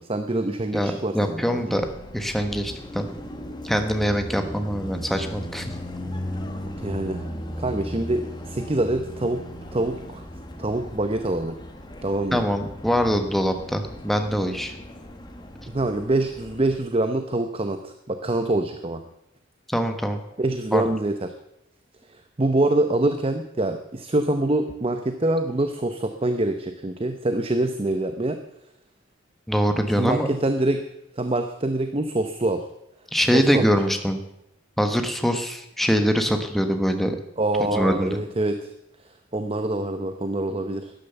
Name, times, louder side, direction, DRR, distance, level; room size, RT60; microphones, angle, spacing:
voice 1, 0.0-1.8 6.8-7.3 7.6-9.4 9.7-10.2 10.6-11.6 12.0-12.4 15.7-19.0 20.4-21.3 22.1-28.4 30.0-30.8 31.1-32.7 33.3-33.6 37.4-38.7 39.3-40.9, right 2 dB, 30° right, 8 dB, 0.7 m, -25 dB
voice 2, 0.7-1.9 2.1-3.1 3.6-5.7 12.3-14.7 19.7-20.2 20.7-20.9 29.5-30.3 33.1-34.2 34.8-37.2 37.6-38.2, equal, ahead, 6 dB, 1.2 m, -23 dB
Car passing by, 1.8-16.8, equal, 20° left, 1.3 m, -37 dB
12.5 x 10.5 x 6.9 m, 0.86 s
head